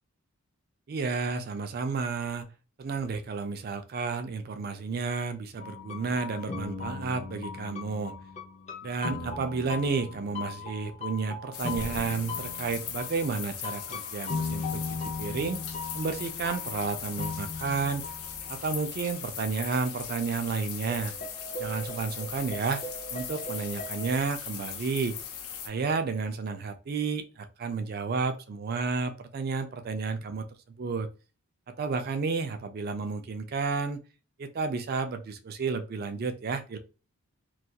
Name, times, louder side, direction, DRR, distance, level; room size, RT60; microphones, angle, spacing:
voice 1, 0.9-2.5 2.8-8.1 8.8-15.6 15.9-18.0 18.5-21.1 21.6-22.8 23.1-25.2 25.6-30.4 30.8-31.1 31.7-34.0 34.4-36.8, right 4 dB, 40° right, 0.3 m, -31 dB
sound 1, 5.6-18.7 19.0-19.1 20.6-20.7 20.9-24.2, left 3 dB, 30° left, 0.4 m, -38 dB
sound 2, 11.5-25.7, left 8 dB, 85° left, 0.5 m, -39 dB
2.3 x 2.2 x 2.7 m
head